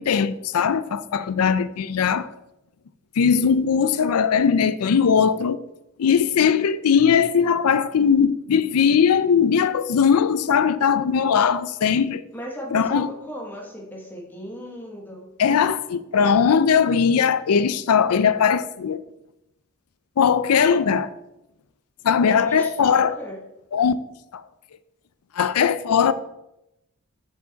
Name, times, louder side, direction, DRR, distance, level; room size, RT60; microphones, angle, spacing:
voice 1, 0.0-2.3 3.2-5.6 6.0-12.2 12.7-13.1 15.4-19.0 20.2-21.1 22.0-23.2 23.7-23.9 24.3-24.4 25.3-26.1, left 7 dB, 90° left, 0.4 m, -19 dB
voice 2, 12.3-15.3 22.3-23.4, equal, 10° left, 1.2 m, -36 dB
7.4 x 5.1 x 3.9 m
head